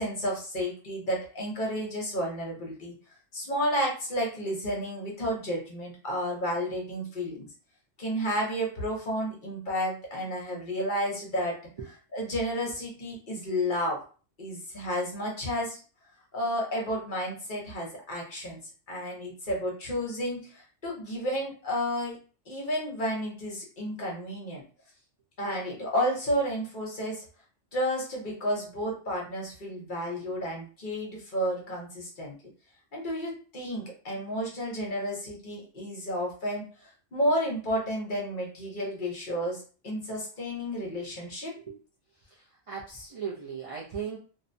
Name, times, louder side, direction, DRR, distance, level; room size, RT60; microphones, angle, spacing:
voice 1, 0.0-2.9 3.3-7.5 8.0-11.6 12.1-14.0 14.4-15.8 16.3-18.6 18.9-22.2 22.5-24.6 25.4-27.3 27.7-32.3 32.9-36.7 37.1-41.5, equal, 45° left, -2 dB, 0.8 m, -31 dB
voice 2, 42.1-44.2, right 6 dB, 65° right, -4 dB, 0.3 m, -38 dB
2.7 x 2.1 x 2.6 m, 0.38 s
omnidirectional pair, 1.3 m